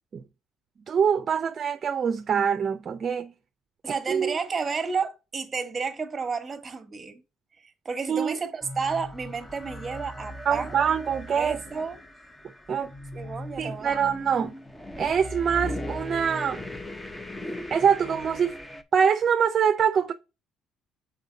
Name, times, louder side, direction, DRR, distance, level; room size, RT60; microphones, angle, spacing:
voice 1, 0.9-3.3 3.9-4.3 8.1-8.3 10.5-11.6 12.7-12.9 13.6-14.5 15.0-16.6 17.7-18.5 18.9-20.1, right 7 dB, 40° right, 0.5 m, -24 dB
voice 2, 3.8-7.2 7.8-10.8 11.4-12.0 13.1-14.1, right 5 dB, 25° right, 1.3 m, -31 dB
sound 1, 8.6-18.8, left 1 dB, 10° left, 0.7 m, -38 dB
6.6 x 4.5 x 3.9 m
cardioid pair, 120°, 0 cm